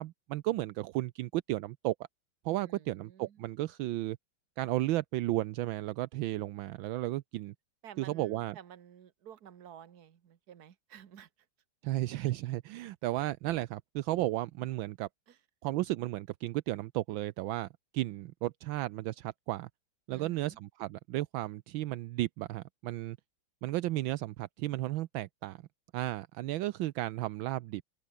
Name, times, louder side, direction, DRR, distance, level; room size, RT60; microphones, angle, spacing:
voice 1, 0.0-1.9 2.4-4.2 4.6-7.5 8.0-8.6 11.8-15.1 15.6-19.7 20.1-23.2 23.6-25.6 25.9-27.8, right 16 dB, 75° right, 1.4 m, -34 dB
voice 2, 2.6-3.3 7.8-11.3 20.1-20.6, right 9 dB, 55° right, 1.7 m, -52 dB
omnidirectional pair, 2.2 m